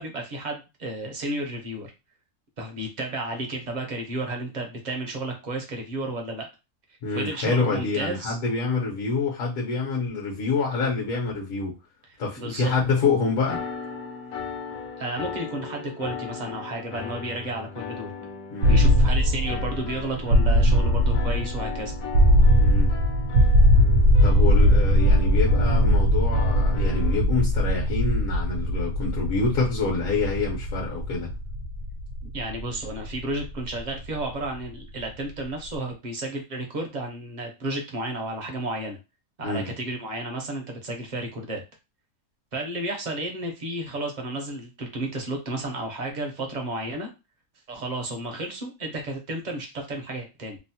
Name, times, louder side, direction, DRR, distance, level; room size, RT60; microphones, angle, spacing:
voice 1, 0.0-1.9 2.6-6.5 7.1-8.4 12.4-12.7 15.0-18.1 18.7-21.9 32.2-39.0 39.4-41.6 42.5-47.1 47.7-50.6, right 2 dB, 45° right, 2 dB, 0.6 m, -32 dB
voice 2, 7.0-11.7 12.2-13.6 18.5-19.0 22.6-22.9 24.2-31.3 39.4-39.7, left 4 dB, 65° left, -2 dB, 1.2 m, -27 dB
sound 1, 13.5-27.2, left 6 dB, 85° left, 1.1 m, -37 dB
sound 2, 18.6-34.5, equal, 80° right, 1.1 m, -20 dB
3.0 x 2.0 x 2.7 m, 0.27 s
omnidirectional pair, 1.5 m